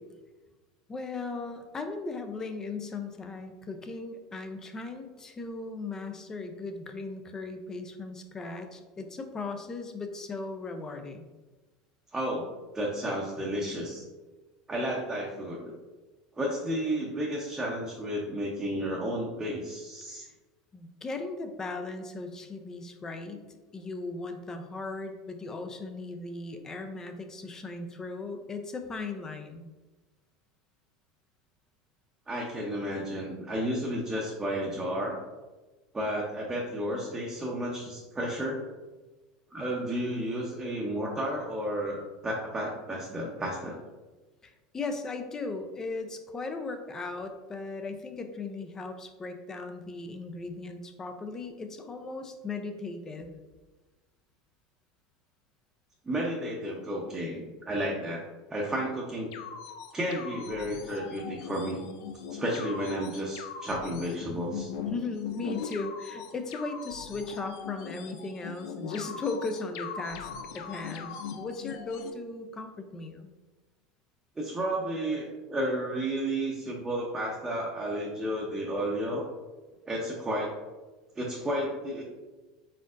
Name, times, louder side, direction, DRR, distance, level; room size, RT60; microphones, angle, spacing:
voice 1, 0.9-11.3 20.7-23.5 23.7-29.7 44.4-53.3 64.9-70.3 70.5-73.3, left 3 dB, 20° left, 6 dB, 0.5 m, -37 dB
voice 2, 12.1-14.0 14.7-15.7 16.3-20.2 32.3-35.2 35.9-38.6 39.5-43.8 56.1-59.3 59.9-61.8 62.3-64.7 74.4-79.3 79.8-80.5 81.1-82.0, equal, 15° right, -4 dB, 0.7 m, -32 dB
sound 1, 59.3-72.1, left 6 dB, 70° left, 0.5 m, -40 dB
4.2 x 3.9 x 2.5 m, 1.2 s
supercardioid pair, 110°, 2 cm